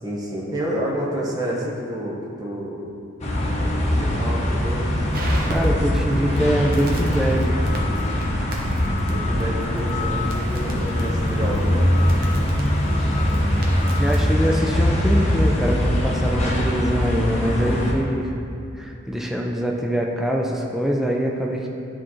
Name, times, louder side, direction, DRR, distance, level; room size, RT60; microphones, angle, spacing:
voice 1, 0.0-2.9 3.5-4.9 9.1-11.9, equal, 20° right, -5 dB, 1.0 m, -29 dB
sound 1, 3.2-17.9, left 1 dB, 35° left, 0.9 m, -22 dB
Crackle, 4.5-14.3, right 1 dB, 50° right, 0.8 m, -37 dB
voice 2, 5.5-7.6 13.9-18.3 18.8-21.7, equal, ahead, -1 dB, 0.4 m, -24 dB
10.5 x 3.8 x 3.1 m, 2.6 s
head